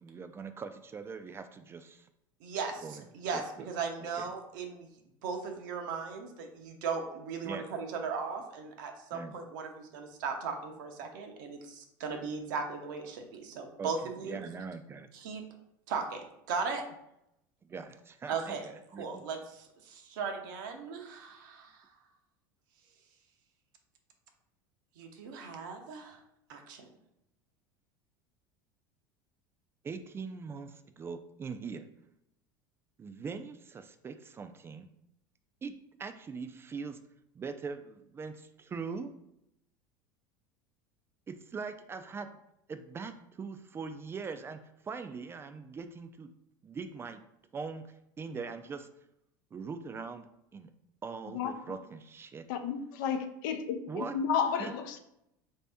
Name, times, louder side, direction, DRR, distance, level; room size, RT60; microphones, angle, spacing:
voice 1, 0.0-2.1 2.8-3.1 3.3-3.7 4.2-4.3 7.4-7.7 9.1-9.4 13.8-13.9 14.2-15.1 17.7-19.2 29.8-31.9 33.0-34.9 35.6-35.7 36.0-37.0 37.4-39.1 41.3-42.3 42.7-46.3 46.6-47.2 47.5-47.8 48.2-48.9 49.5-50.3 50.5-50.7 51.0-52.4 53.9-54.1 54.6-54.7, right 5 dB, 25° right, 9 dB, 0.3 m, -41 dB
voice 2, 2.4-4.9 5.2-14.4 15.1-15.4 15.9-16.8 18.3-18.7 19.0-21.9 25.0-26.2 26.5-26.9, right 5 dB, 80° right, 4 dB, 0.7 m, -37 dB
voice 3, 52.5-55.0, left 7 dB, 75° left, 7 dB, 0.5 m, -32 dB
3.3 x 2.7 x 3.4 m, 0.80 s
supercardioid pair, 100°, 10 cm